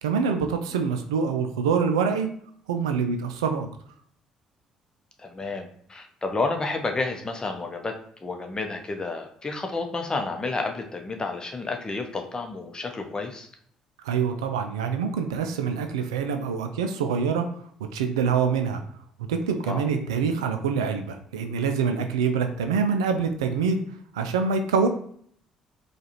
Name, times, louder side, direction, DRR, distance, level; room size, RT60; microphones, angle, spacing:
voice 1, 0.0-2.3 2.7-3.7 14.0-17.5 17.9-18.8 19.3-23.8 24.1-24.9, right 6 dB, 80° right, 6 dB, 0.4 m, -25 dB
voice 2, 5.2-13.5 19.6-19.9, left 3 dB, 25° left, 4 dB, 0.8 m, -30 dB
4.7 x 2.4 x 2.9 m, 0.63 s
figure-of-eight pair, 50°, 3 cm